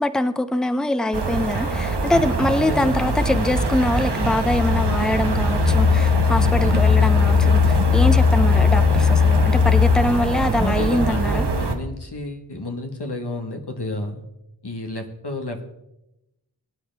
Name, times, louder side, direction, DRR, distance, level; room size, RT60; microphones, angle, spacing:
voice 1, 0.0-11.5, left 1 dB, ahead, 11 dB, 0.7 m, -23 dB
sound 1, 1.1-11.7, right 3 dB, 85° right, 1.2 m, -24 dB
voice 2, 2.6-3.2 10.5-14.2 14.6-15.7, left 2 dB, 80° left, 4 dB, 1.5 m, -30 dB
sound 2, 2.9-10.6, left 7 dB, 35° left, 0.4 m, -20 dB
21.0 x 9.3 x 3.4 m, 0.91 s
wide cardioid pair, 40°, 39 cm